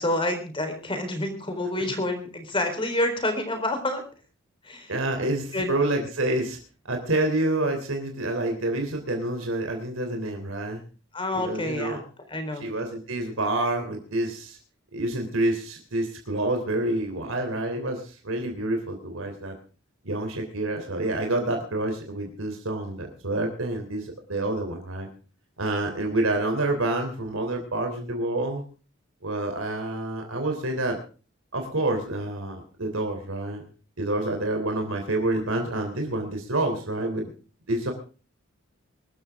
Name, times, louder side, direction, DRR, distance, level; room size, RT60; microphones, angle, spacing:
voice 1, 0.0-4.0 4.6-4.9 5.5-5.7 11.1-12.0 12.3-12.7, left 1 dB, 25° left, 7 dB, 3.9 m, -28 dB
voice 2, 4.9-6.6 6.8-10.8 11.3-12.0 12.5-14.6 14.9-19.5 20.0-25.1 25.6-28.6 29.2-31.0 31.5-33.6 34.0-37.3 37.7-37.9, right 2 dB, 90° right, 4 dB, 3.3 m, -28 dB
22.5 x 12.5 x 3.6 m, 0.37 s
head